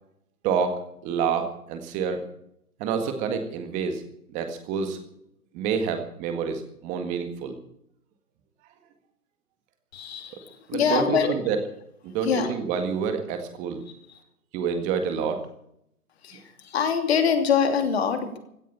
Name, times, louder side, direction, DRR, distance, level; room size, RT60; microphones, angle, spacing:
voice 1, 0.4-2.2 2.8-4.0 4.3-5.0 5.5-7.5 10.7-11.6 12.0-13.8 14.5-15.5 16.3-16.4, right 6 dB, 15° right, 7 dB, 1.8 m, -28 dB
voice 2, 9.9-11.3 12.2-12.5 16.2-18.4, left 7 dB, 45° left, 7 dB, 2.9 m, -24 dB
16.5 x 9.9 x 8.5 m, 0.74 s
hypercardioid pair, 155°, 45 cm